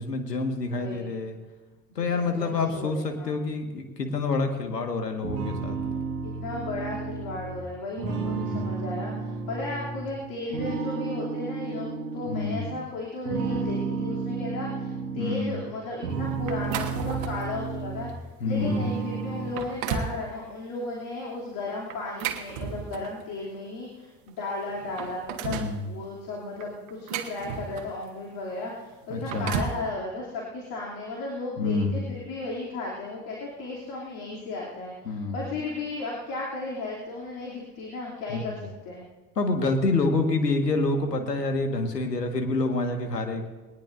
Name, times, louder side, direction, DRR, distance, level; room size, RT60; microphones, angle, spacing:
voice 1, 0.0-1.4 2.0-5.8 8.4-8.7 12.3-12.6 15.2-15.6 18.4-18.9 25.5-25.9 29.1-29.5 31.6-32.0 35.1-35.4 38.3-38.5 39.4-43.5, left 3 dB, 80° left, 5 dB, 1.8 m, -27 dB
voice 2, 0.5-1.1 1.9-3.4 6.2-18.1 18.4-39.0, left 2 dB, 45° left, -3 dB, 3.0 m, -35 dB
sound 1, 5.2-10.1 10.5-12.8 13.3-15.4 15.8-18.3 18.6-19.5, right 4 dB, 70° right, 1.7 m, -32 dB
sound 2, 16.5-17.5 18.1-18.3 18.9-19.0 19.4-20.2 21.9-23.2 24.3-24.4 24.7-25.8 26.6-28.0 29.0-29.8, right 7 dB, 45° right, 1.5 m, -33 dB
20.5 x 19.0 x 2.7 m, 1.2 s
figure-of-eight pair, 70°, 48 cm